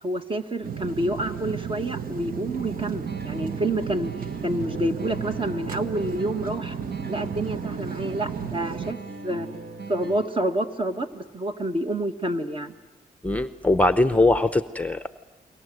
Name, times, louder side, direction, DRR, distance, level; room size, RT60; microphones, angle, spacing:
voice 1, 0.0-4.1 4.4-6.8 7.1-9.0 9.2-9.5 9.9-12.7, right 1 dB, 35° right, 6 dB, 1.8 m, -28 dB
sound 1, 0.6-8.9, right 7 dB, 65° right, 1.1 m, -34 dB
sound 2, 2.6-10.6, right 3 dB, 85° right, 2.5 m, -39 dB
voice 2, 13.2-15.1, left 2 dB, 10° left, 11 dB, 0.8 m, -21 dB
29.5 x 22.5 x 7.9 m, 1.2 s
cardioid pair, 95°, 16 cm